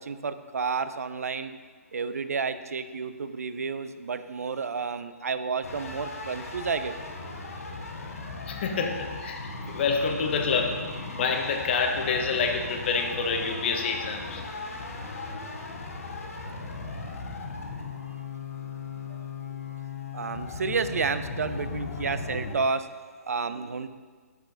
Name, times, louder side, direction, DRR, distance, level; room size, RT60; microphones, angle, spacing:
voice 1, 0.0-1.5 1.9-6.9 19.1-19.2 19.5-19.6 20.1-23.9, right 5 dB, 70° right, 12 dB, 0.4 m, -31 dB
sound 1, 5.6-22.6, left 3 dB, 65° left, 1.0 m, -37 dB
voice 2, 8.5-14.4, left 5 dB, 45° left, 4 dB, 0.8 m, -28 dB
6.6 x 5.8 x 3.8 m, 1.5 s
figure-of-eight pair, 135°, 8 cm